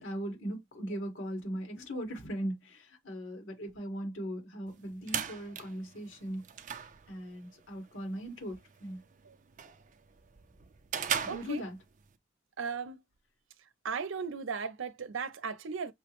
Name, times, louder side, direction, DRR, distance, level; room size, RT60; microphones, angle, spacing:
voice 1, 0.0-6.5 7.1-9.0 11.2-11.8, equal, 75° left, 1.9 m, -39 dB
sound 1, 4.7-12.2, right 8 dB, 40° right, 0.5 m, -40 dB
voice 2, 11.3-11.6 12.6-13.0 13.8-15.9, right 5 dB, 90° right, 0.6 m, -36 dB
6.0 x 2.1 x 3.0 m
head